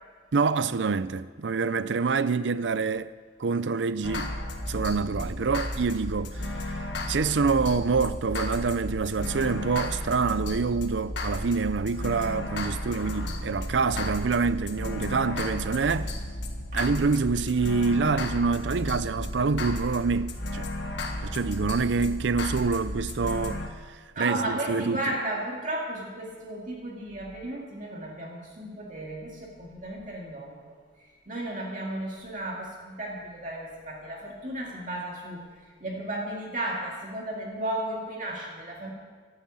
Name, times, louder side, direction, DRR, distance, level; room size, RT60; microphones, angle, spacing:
voice 1, 0.3-3.1 3.4-4.3 4.7-16.2 16.7-20.7 21.2-25.0, right 4 dB, 75° right, 0.5 m, -26 dB
sound 1, 4.0-23.7, left 1 dB, 75° left, 1.7 m, -33 dB
voice 2, 24.2-30.7 31.3-35.5 35.8-38.9, right 1 dB, 45° right, 2.2 m, -34 dB
12.0 x 10.0 x 8.5 m
head